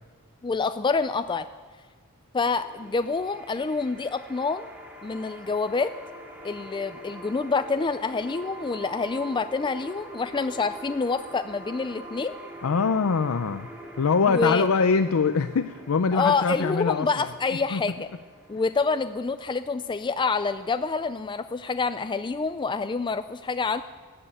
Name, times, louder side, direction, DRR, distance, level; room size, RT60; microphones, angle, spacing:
voice 1, 0.4-1.5 2.3-4.7 5.0-5.9 6.4-12.3 14.2-14.7 16.1-18.1 18.5-23.8, left 4 dB, 20° left, 11 dB, 0.4 m, -27 dB
sound 1, 2.6-21.6, right 1 dB, 5° right, 2.2 m, -45 dB
voice 2, 12.6-13.7 14.0-17.3 17.7-17.8, left 5 dB, 70° left, 10 dB, 0.5 m, -23 dB
13.5 x 11.0 x 8.8 m, 1.4 s
head